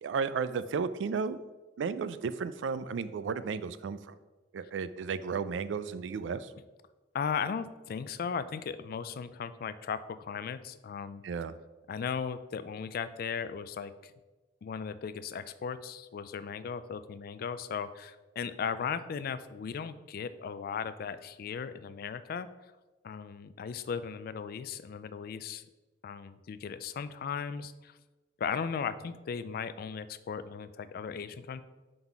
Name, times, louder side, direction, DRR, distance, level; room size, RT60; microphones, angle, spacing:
voice 1, 0.0-1.4 1.8-4.2 4.5-6.5 11.2-11.5, right 5 dB, 85° right, 14 dB, 0.3 m, -33 dB
voice 2, 7.1-11.2 11.9-14.1 14.6-22.5 23.0-25.6 26.0-27.9 28.4-31.6, left 6 dB, 55° left, 14 dB, 0.3 m, -37 dB
5.6 x 3.9 x 4.5 m, 1.2 s
head